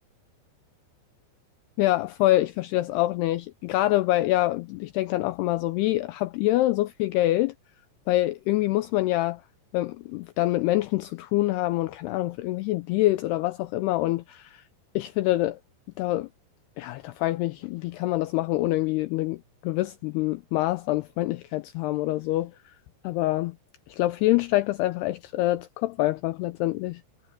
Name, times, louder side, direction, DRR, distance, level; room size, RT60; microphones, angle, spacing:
voice 1, 1.8-7.5 8.1-9.4 9.7-14.6 15.0-15.6 16.0-16.3 16.8-22.5 23.0-23.6 23.9-27.0, left 17 dB, 85° left, 2.3 m, -25 dB
omnidirectional pair, 5.3 m